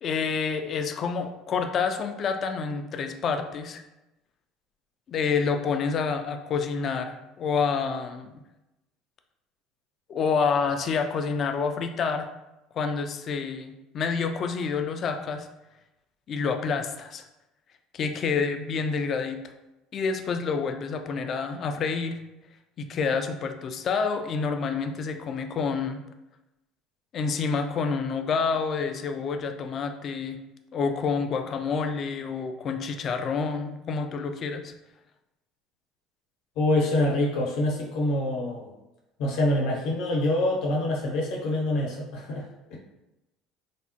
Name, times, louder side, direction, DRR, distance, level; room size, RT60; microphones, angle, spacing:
voice 1, 0.0-3.8 5.1-8.4 10.1-12.3 12.7-15.5 16.3-17.2 17.9-19.4 19.9-22.2 22.8-26.0 27.1-30.4 30.7-34.7, left 5 dB, 45° left, 6 dB, 0.3 m, -28 dB
voice 2, 36.6-38.7 39.2-42.4 42.7-42.8, left 1 dB, 70° left, -2 dB, 0.7 m, -25 dB
3.3 x 2.0 x 2.8 m, 0.97 s
supercardioid pair, 85°, 0 cm